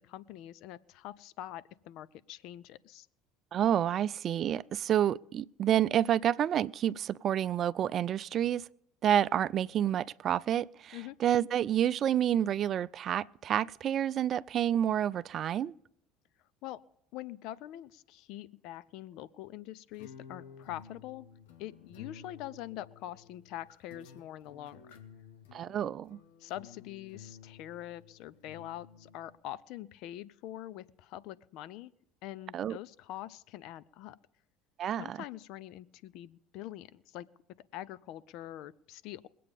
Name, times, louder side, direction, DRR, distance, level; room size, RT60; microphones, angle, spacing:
voice 1, 0.0-3.1 10.9-11.2 16.6-16.8 17.1-21.3 21.6-25.0 26.4-31.9 32.2-34.2 35.0-37.3 37.7-39.3, left 13 dB, 65° left, 0.6 m, -44 dB
voice 2, 3.5-8.7 9.0-15.7 25.5-26.2 32.5-32.8 34.8-35.2, right 10 dB, 50° right, 0.4 m, -29 dB
sound 1, 19.9-29.4, left 7 dB, 85° left, 1.3 m, -53 dB
21.0 x 8.5 x 5.2 m
hypercardioid pair, 80°, 0 cm